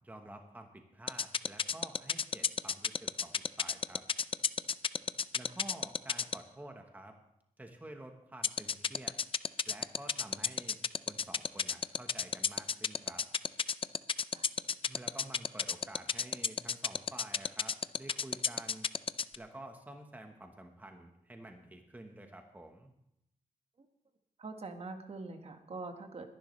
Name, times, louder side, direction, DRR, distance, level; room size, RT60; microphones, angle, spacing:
voice 1, 0.0-4.0 5.3-7.1 7.6-9.2 9.7-10.8 11.1-13.2 14.9-18.9 19.4-22.9, right 1 dB, 10° right, 4 dB, 1.1 m, -50 dB
sound 1, 1.1-6.3 8.4-19.4, left 6 dB, 40° left, 0.4 m, -30 dB
voice 2, 24.4-26.3, right 3 dB, 45° right, 5 dB, 1.5 m, -44 dB
22.0 x 11.0 x 3.2 m, 0.79 s
wide cardioid pair, 125°, 14 cm